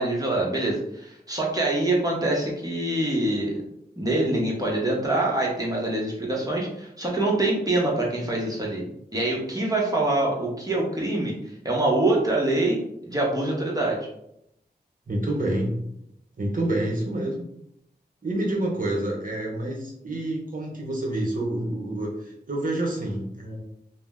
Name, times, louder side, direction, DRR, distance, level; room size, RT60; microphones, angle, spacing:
voice 1, 0.0-3.5 4.0-8.8 9.1-11.4 11.6-14.1, right 2 dB, 20° right, -3 dB, 0.9 m, -25 dB
voice 2, 15.1-15.8 16.4-17.4 18.2-23.6, right 1 dB, 50° right, -1 dB, 0.8 m, -28 dB
2.7 x 2.1 x 3.4 m, 0.77 s
wide cardioid pair, 60°, 17 cm